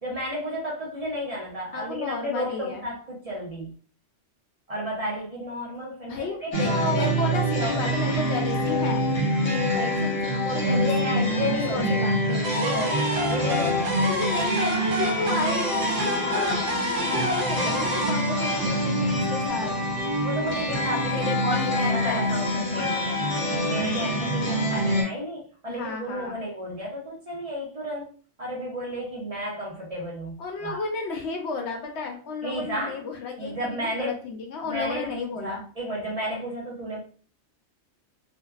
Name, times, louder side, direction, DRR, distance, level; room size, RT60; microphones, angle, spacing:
voice 1, 0.0-3.7 4.7-7.2 7.5-8.1 10.5-12.0 12.6-14.0 16.3-16.6 20.2-23.2 23.5-28.1 28.4-30.8 32.4-33.0 33.4-34.2 34.6-37.0, equal, 35° right, -4 dB, 0.7 m, -32 dB
voice 2, 1.7-2.9 6.1-9.0 9.4-11.2 11.7-12.9 14.1-16.0 16.2-19.7 21.1-22.2 25.7-26.4 30.4-35.6, left 4 dB, 75° left, 2 dB, 0.9 m, -33 dB
sound 1, 6.5-25.0, equal, 35° left, 0.7 m, -26 dB
sound 2, 12.4-19.4, equal, 65° right, 0.9 m, -30 dB
2.5 x 2.2 x 2.3 m, 0.40 s
omnidirectional pair, 1.2 m